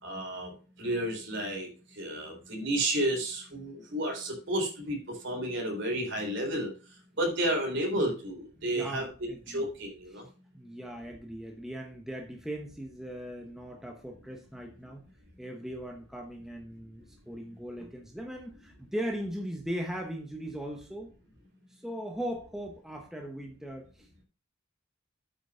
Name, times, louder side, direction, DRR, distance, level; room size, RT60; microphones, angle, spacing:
voice 1, 0.0-0.5 0.8-1.7 1.9-6.7 7.2-10.3, right 1 dB, 60° right, 1 dB, 3.8 m, -31 dB
voice 2, 8.6-9.7 10.1-10.2 10.5-15.1 15.4-21.1 21.7-24.2, equal, ahead, 2 dB, 1.0 m, -39 dB
8.5 x 6.0 x 5.0 m, 0.36 s
head